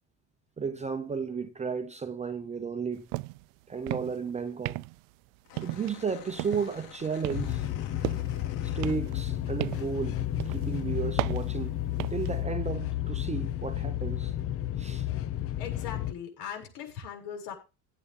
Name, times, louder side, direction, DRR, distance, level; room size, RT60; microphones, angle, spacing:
voice 1, 0.6-3.1 3.7-4.8 5.6-7.7 8.6-11.7 12.1-14.3 14.8-15.1, right 5 dB, 15° right, 0.7 m, -33 dB
sound 1, 3.1-3.5 3.8-4.2 4.7-5.1 5.6-6.0 6.4-6.8 7.2-8.4 8.8-10.0 10.4-10.7 11.2-12.3, right 25 dB, 80° right, 0.5 m, -35 dB
sound 2, 5.4-9.5 9.8-10.8, left 9 dB, 85° left, 3.4 m, -50 dB
sound 3, 7.3-16.1, left 13 dB, 35° left, 0.6 m, -32 dB
voice 2, 15.6-17.5, left 8 dB, 65° left, 7.3 m, -40 dB
17.0 x 8.5 x 3.7 m
cardioid pair, 160°, 44 cm